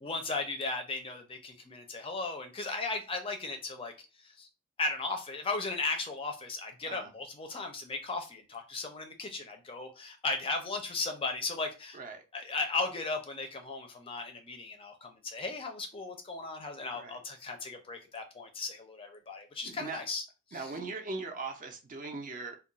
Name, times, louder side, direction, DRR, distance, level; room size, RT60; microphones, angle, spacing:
voice 1, 0.0-3.9 4.4-4.5 4.8-12.0 12.3-20.2 20.5-20.6, left 3 dB, 25° left, 0.4 m, -36 dB
voice 2, 11.9-12.2 16.9-17.2 19.6-20.0 20.5-22.6, right 3 dB, 40° right, 0.5 m, -40 dB
2.3 x 2.2 x 3.8 m
head